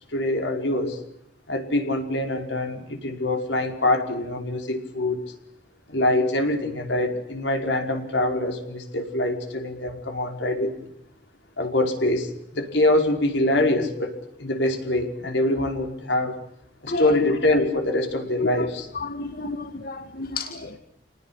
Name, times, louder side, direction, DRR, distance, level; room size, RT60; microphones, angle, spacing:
voice 1, 0.1-1.0 1.5-5.2 5.9-10.7 11.6-14.1 14.4-16.4 16.8-18.9, left 1 dB, 70° left, 5 dB, 5.3 m, -24 dB
voice 2, 16.9-17.3 19.0-20.8, left 3 dB, 55° left, 6 dB, 2.1 m, -31 dB
29.5 x 19.0 x 8.6 m, 0.74 s
head